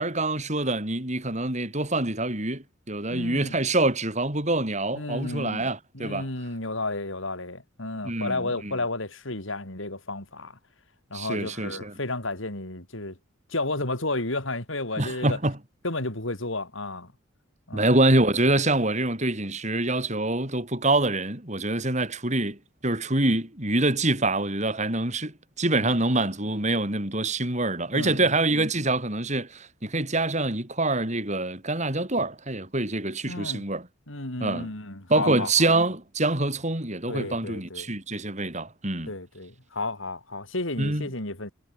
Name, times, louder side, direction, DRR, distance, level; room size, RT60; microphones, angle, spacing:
voice 1, 0.0-6.3 8.0-8.7 11.1-11.9 15.0-15.6 17.7-22.6 22.8-25.3 25.6-33.9 34.4-34.7 35.1-39.1 40.8-41.1, right 2 dB, 35° right, 5.1 m, -25 dB
voice 2, 3.1-3.6 4.9-5.6 5.9-10.6 11.1-13.2 13.5-15.4 15.8-17.1 17.7-17.9 25.8-26.0 27.9-28.3 33.3-33.6 34.1-35.7 37.1-37.9 39.1-41.5, left 2 dB, 70° left, 4.3 m, -32 dB
head